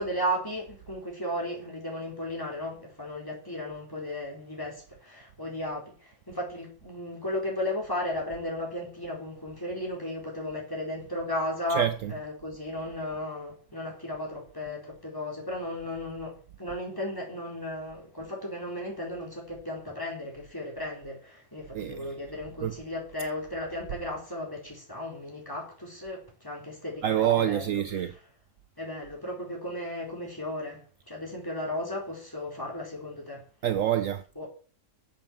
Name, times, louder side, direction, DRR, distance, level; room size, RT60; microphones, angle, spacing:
voice 1, 0.0-27.8 28.8-33.4 34.4-34.5, left 1 dB, 15° left, 4.3 m, -35 dB
voice 2, 11.7-12.2 21.7-22.2 22.6-22.8 27.0-28.1 33.6-34.5, right 11 dB, 65° right, 1.0 m, -27 dB
8.4 x 7.6 x 7.1 m
omnidirectional pair, 1.6 m